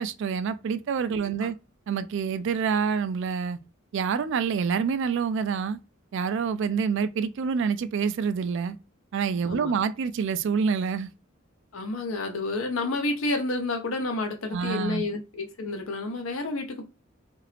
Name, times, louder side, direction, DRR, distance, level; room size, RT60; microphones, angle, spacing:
voice 1, 0.0-1.6 1.9-3.6 3.9-5.8 6.1-8.8 9.1-11.1 14.5-15.0, right 6 dB, 65° right, 0.3 m, -27 dB
voice 2, 1.1-1.5 9.4-9.7 11.7-16.9, left 2 dB, 85° left, 0.8 m, -30 dB
2.8 x 2.5 x 3.3 m
head